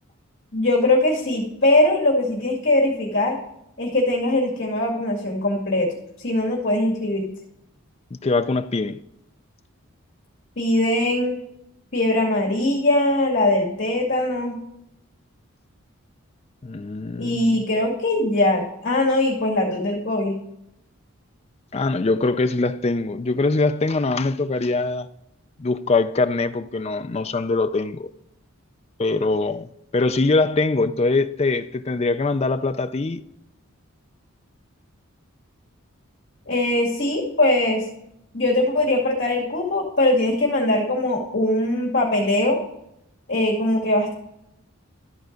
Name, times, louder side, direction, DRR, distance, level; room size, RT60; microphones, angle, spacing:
voice 1, 0.5-3.3 3.8-5.9 6.2-7.3 10.6-11.4 11.9-14.6 17.2-20.3 36.5-37.8 38.3-42.6 43.3-44.1, left 1 dB, 50° left, 2.1 m, -21 dB
voice 2, 8.1-9.0 16.6-17.6 21.7-25.1 25.6-28.1 29.0-33.2, left 3 dB, 30° left, 0.4 m, -23 dB
13.0 x 4.6 x 5.1 m
head